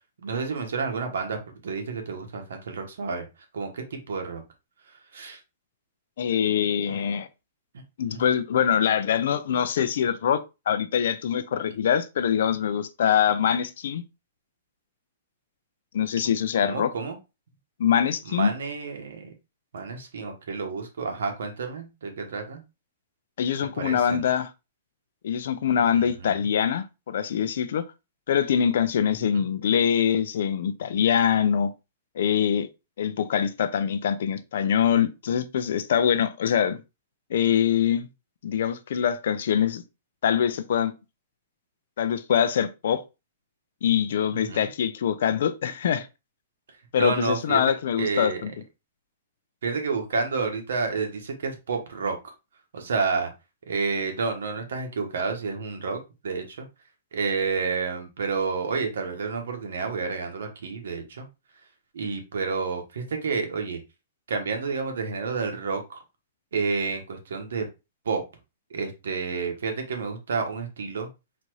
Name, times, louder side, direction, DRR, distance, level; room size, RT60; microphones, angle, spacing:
voice 1, 0.2-1.4 1.6-3.2 3.5-4.4 5.1-5.4 6.9-7.0 8.1-8.2 16.6-17.2 18.3-19.3 19.7-22.6 23.7-24.2 25.9-26.4 29.2-29.4 44.3-44.6 47.0-47.6 48.0-48.4 49.6-52.2 52.7-53.3 53.7-56.7 57.1-61.3 61.9-63.8 64.3-66.0 66.5-67.7 68.0-68.2 68.7-71.1, right 4 dB, 85° right, 1.3 m, -30 dB
voice 2, 6.2-7.3 8.0-10.4 10.7-14.0 15.9-16.9 17.8-18.5 23.4-24.5 25.2-27.8 28.3-31.7 32.2-32.7 33.0-36.8 37.3-38.1 38.4-39.8 40.2-40.9 42.0-43.0 43.8-46.1 46.9-48.5, left 8 dB, 55° left, 0.5 m, -24 dB
4.2 x 2.6 x 4.6 m
hypercardioid pair, 180°, 0 cm